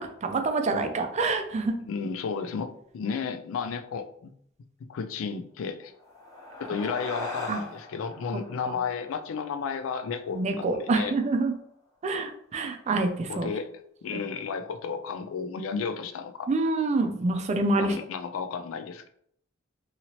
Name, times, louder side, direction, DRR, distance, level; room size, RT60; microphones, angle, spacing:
voice 1, 0.0-1.8 7.5-7.6 10.3-11.5 12.0-13.5 16.5-17.9, right 3 dB, 35° right, 6 dB, 0.4 m, -26 dB
voice 2, 1.8-4.3 4.9-5.9 6.6-11.1 13.3-13.7 14.0-16.5 17.8-19.1, left 5 dB, 85° left, 7 dB, 0.3 m, -33 dB
sound 1, 5.9-10.6, left 2 dB, 20° left, 0.7 m, -41 dB
2.8 x 2.8 x 2.9 m, 0.68 s
head